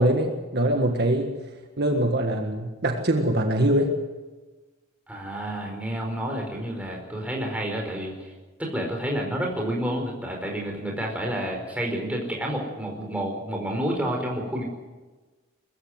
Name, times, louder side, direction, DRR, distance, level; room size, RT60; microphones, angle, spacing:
voice 1, 0.0-1.3 1.8-3.9, right 1 dB, 50° right, 4 dB, 1.6 m, -23 dB
voice 2, 5.1-8.3 8.6-14.6, right 1 dB, 5° right, 0 dB, 4.8 m, -29 dB
21.5 x 14.5 x 9.6 m, 1.2 s
head